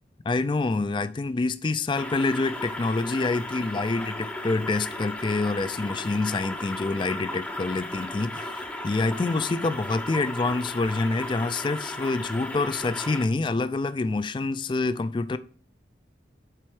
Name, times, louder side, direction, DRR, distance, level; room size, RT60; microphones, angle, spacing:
voice 1, 0.3-15.4, left 3 dB, 25° left, 0.3 m, -27 dB
sound 1, 2.0-13.3, left 1 dB, 10° left, 0.7 m, -35 dB
7.5 x 4.3 x 4.8 m
head